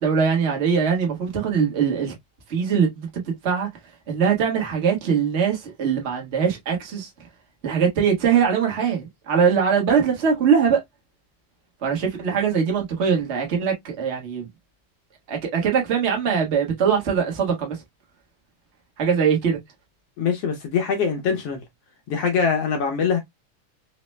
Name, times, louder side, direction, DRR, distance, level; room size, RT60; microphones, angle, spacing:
voice 1, 0.0-2.1 2.5-3.1 3.4-3.7 4.1-7.1 7.6-10.8 11.8-14.5 15.3-17.8 19.0-19.6, right 6 dB, 65° right, 0.6 m, -21 dB
voice 2, 20.2-21.6 22.1-23.2, left 6 dB, 70° left, 1.6 m, -23 dB
4.8 x 2.1 x 3.1 m
omnidirectional pair, 3.4 m